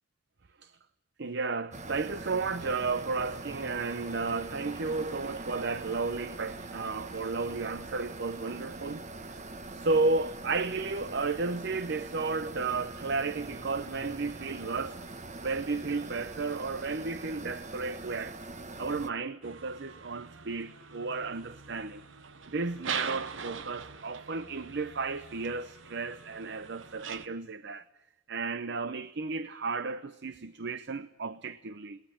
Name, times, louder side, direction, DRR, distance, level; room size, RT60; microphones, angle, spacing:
voice 1, 1.2-9.4 9.7-15.0 15.4-18.4 18.8-22.0 22.5-27.8 28.3-32.0, right 3 dB, 60° right, 0.7 m, -33 dB
sound 1, 1.7-19.1, right 2 dB, 35° right, 1.2 m, -43 dB
sound 2, 19.4-27.3, right 6 dB, 75° right, 1.1 m, -42 dB
22.0 x 18.5 x 10.0 m
head